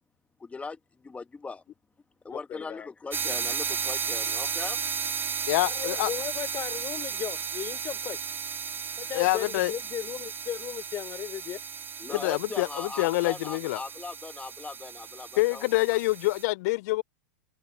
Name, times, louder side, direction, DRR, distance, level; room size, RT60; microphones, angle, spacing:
voice 1, 0.4-1.6 2.2-4.8 12.0-15.7, left 4 dB, 10° left, 1.4 m, -39 dB
voice 2, 2.3-2.9 5.6-8.2 9.0-11.6 12.1-12.2, left 10 dB, 30° left, 4.7 m, -36 dB
sound 1, 3.1-16.4, right 6 dB, 20° right, 2.6 m, -34 dB
voice 3, 5.5-6.1 9.1-9.7 12.1-13.8 15.4-17.0, left 21 dB, 55° left, 0.5 m, -26 dB
hypercardioid pair, 110°, 11 cm